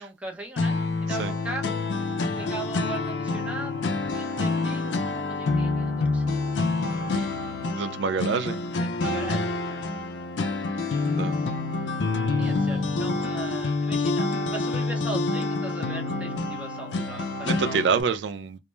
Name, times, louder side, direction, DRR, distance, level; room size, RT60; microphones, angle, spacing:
voice 1, 0.0-1.8 2.3-3.9 4.1-6.5 8.8-9.8 12.4-17.8, right 2 dB, 5° right, 0.6 m, -39 dB
sound 1, 0.6-18.0, left 3 dB, 90° left, 0.4 m, -27 dB
voice 2, 7.7-8.6 11.1-11.4 17.4-18.6, right 5 dB, 85° right, 0.3 m, -26 dB
2.2 x 2.1 x 3.0 m
head